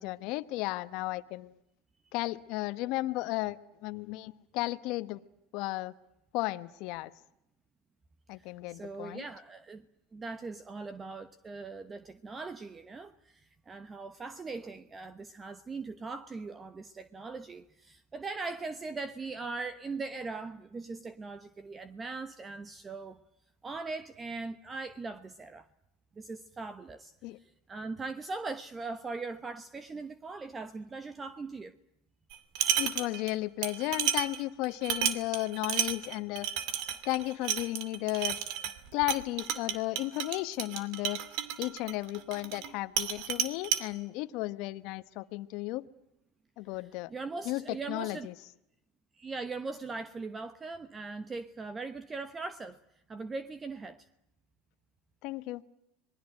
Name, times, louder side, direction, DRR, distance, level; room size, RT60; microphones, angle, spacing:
voice 1, 0.0-1.5 2.1-5.2 5.5-5.9 6.3-7.1 8.3-9.2 27.2-27.4 32.8-36.5 37.0-38.4 38.9-41.2 41.6-45.8 46.6-47.1 47.4-48.3 55.2-55.6, left 19 dB, 60° left, 1.1 m, -34 dB
voice 2, 8.4-9.8 10.1-23.2 23.6-25.7 26.2-31.7 46.7-48.3 49.2-52.8 53.1-54.1, right 3 dB, 20° right, 1.1 m, -40 dB
sound 1, 32.3-33.3 33.6-42.7 43.0-43.8, right 10 dB, 65° right, 2.5 m, -32 dB
26.5 x 21.0 x 9.0 m
supercardioid pair, 110°, 0 cm